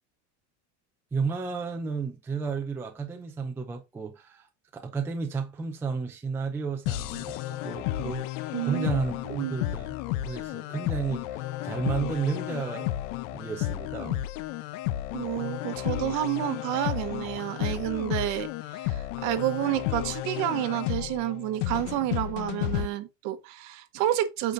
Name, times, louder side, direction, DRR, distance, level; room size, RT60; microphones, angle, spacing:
voice 1, 1.1-4.5 4.7-12.9 13.3-14.2, right 5 dB, 5° right, 0.5 m, -32 dB
sound 1, 6.9-22.9, left 14 dB, 70° left, 0.8 m, -32 dB
voice 2, 8.5-9.0 9.3-9.6 15.1-24.5, right 13 dB, 50° right, 1.1 m, -30 dB
8.3 x 5.9 x 2.6 m
cardioid pair, 180°, 37 cm